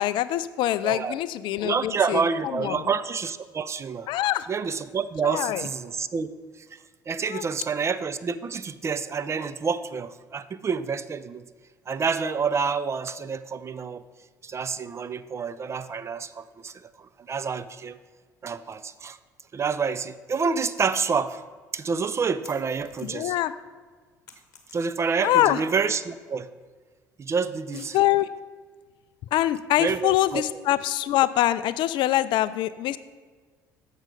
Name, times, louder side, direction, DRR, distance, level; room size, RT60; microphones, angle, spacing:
voice 1, 0.0-2.8 4.1-4.5 5.2-5.7 7.3-7.4 23.0-23.5 25.2-25.6 27.7-28.3 29.3-33.0, left 14 dB, 55° left, 15 dB, 0.4 m, -24 dB
voice 2, 0.8-1.2 1.6-4.1 4.5-6.3 7.1-11.4 11.9-14.0 14.4-16.7 17.3-18.0 18.4-19.2 19.5-21.4 21.7-23.3 24.7-26.5 27.2-28.0 29.8-30.4, right 5 dB, 30° right, 14 dB, 0.4 m, -28 dB
sound 1, 22.4-23.5 23.8-25.3, left 6 dB, 75° left, 0.9 m, -52 dB
7.4 x 5.4 x 5.0 m, 1.5 s
hypercardioid pair, 60°, 10 cm